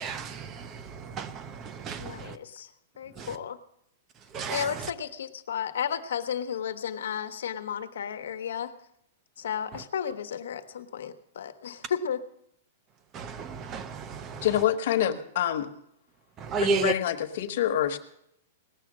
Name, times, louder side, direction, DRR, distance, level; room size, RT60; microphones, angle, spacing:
voice 1, 0.0-2.3 3.2-3.3 4.3-4.7 13.1-14.5 16.4-16.9, right 4 dB, 20° right, 0.5 m, -32 dB
voice 2, 2.0-2.7 3.0-3.6 4.5-8.7 9.4-12.2, left 8 dB, 85° left, 1.0 m, -33 dB
voice 3, 14.4-15.7 16.6-18.0, left 11 dB, 45° left, 1.1 m, -26 dB
18.5 x 7.2 x 7.3 m
supercardioid pair, 180°, 0 cm